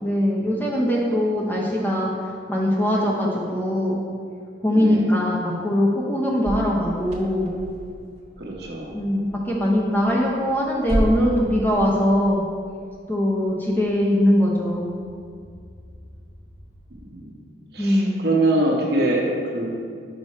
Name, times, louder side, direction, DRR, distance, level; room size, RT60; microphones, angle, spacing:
voice 1, 0.0-2.1 2.5-4.0 4.6-7.5 8.9-12.5 13.1-14.9 17.8-18.3, equal, 10° left, -3 dB, 0.7 m, -21 dB
voice 2, 4.7-5.1 8.4-8.9 17.1-17.4 17.7-19.7, right 2 dB, 55° right, -2 dB, 1.0 m, -23 dB
sound 1, 6.4-17.1, right 1 dB, 35° right, 0.7 m, -34 dB
5.0 x 4.9 x 4.2 m, 2.2 s
head